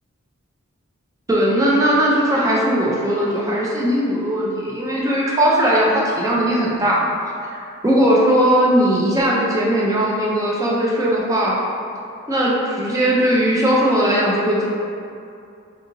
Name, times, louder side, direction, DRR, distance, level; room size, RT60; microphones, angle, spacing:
voice 1, 1.3-7.1 7.5-11.6 12.3-14.7, equal, 15° right, -5 dB, 0.4 m, -18 dB
4.0 x 2.8 x 2.6 m, 2.5 s
head